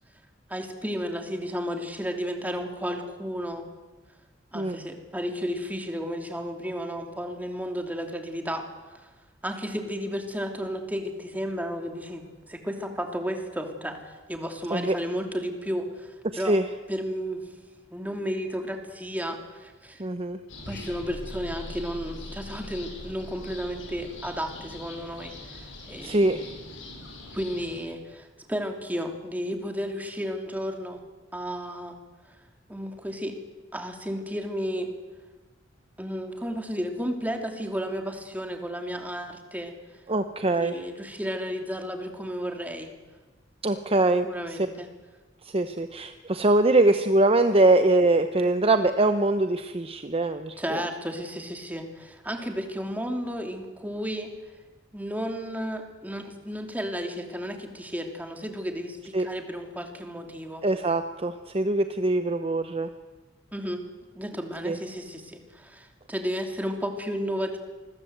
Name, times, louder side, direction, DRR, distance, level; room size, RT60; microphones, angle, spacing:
voice 1, 0.5-3.6 4.5-9.1 9.4-16.6 16.9-17.5 17.9-20.0 20.7-26.3 27.3-31.0 31.3-32.0 32.7-33.3 33.7-34.9 36.0-39.7 40.4-42.9 44.2-44.9 50.6-54.3 54.9-60.6 63.5-63.8 64.1-67.6, equal, 10° right, 4 dB, 3.0 m, -33 dB
voice 2, 16.3-16.6 20.0-20.4 26.0-26.4 40.1-40.7 43.6-44.3 45.4-50.8 59.1-59.3 60.6-62.9 64.6-64.8, right 2 dB, 30° right, 9 dB, 0.9 m, -23 dB
sound 1, 20.5-27.8, left 2 dB, 90° left, 7.3 m, -44 dB
sound 2, 20.6-25.3, left 1 dB, 55° left, 6.1 m, -43 dB
28.0 x 21.5 x 8.1 m, 1.2 s
head